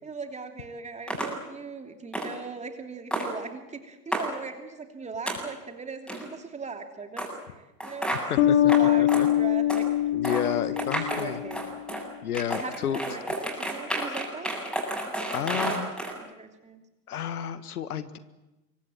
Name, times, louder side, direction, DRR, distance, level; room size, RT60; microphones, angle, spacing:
voice 1, 0.0-8.2 8.5-10.8 11.1-11.6 12.6-14.5 15.3-16.8, right 4 dB, 15° right, 5 dB, 3.0 m, -40 dB
sound 1, 1.1-1.3 2.1-2.3 3.1-3.3 4.1-4.3 5.3-5.4 6.1-6.3 7.2-7.3 7.8-8.2 8.7-8.8 9.1-9.2 9.7-9.8 10.2-10.4 10.8-12.0 12.3-16.1, right 1 dB, ahead, 7.7 m, -31 dB
sound 2, 8.4-11.7, left 12 dB, 45° left, 1.9 m, -23 dB
voice 2, 10.1-11.4 12.2-13.0 15.3-15.9 17.1-18.2, left 9 dB, 65° left, 13 dB, 1.6 m, -31 dB
26.5 x 24.0 x 7.8 m, 1.0 s
figure-of-eight pair, 95°, 48 cm